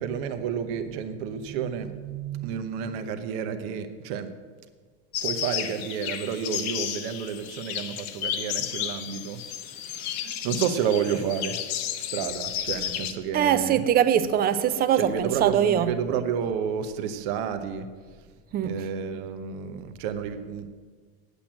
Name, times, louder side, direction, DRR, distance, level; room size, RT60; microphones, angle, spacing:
voice 1, 0.0-1.9 2.4-4.3 5.2-9.4 9.9-11.6 12.1-13.8 15.0-17.9 18.6-20.7, right 7 dB, 65° right, 1.0 m, -30 dB
voice 2, 1.5-2.5 13.3-15.9 18.5-18.9, right 9 dB, 30° right, 0.5 m, -24 dB
sound 1, 5.1-13.1, left 10 dB, 80° left, 1.0 m, -32 dB
8.9 x 8.2 x 7.6 m
supercardioid pair, 140°, 32 cm